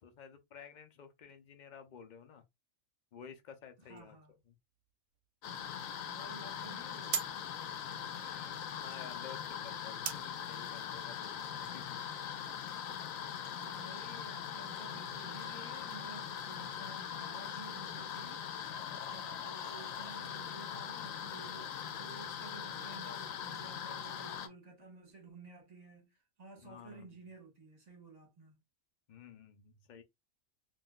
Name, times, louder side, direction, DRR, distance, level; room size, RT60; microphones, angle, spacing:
voice 1, 0.0-2.4 3.1-4.2 4.5-4.6 8.1-12.3 26.6-27.1 29.1-30.0, left 7 dB, 50° left, 0.5 m, -53 dB
voice 2, 3.8-4.4 6.0-7.2 13.4-18.5 19.1-28.6, right 3 dB, 30° right, 1.5 m, -53 dB
sound 1, 4.0-12.5, right 8 dB, 70° right, 1.0 m, -46 dB
sound 2, 5.4-24.5, left 9 dB, 85° left, 1.0 m, -41 dB
3.7 x 2.6 x 2.3 m
omnidirectional pair, 1.4 m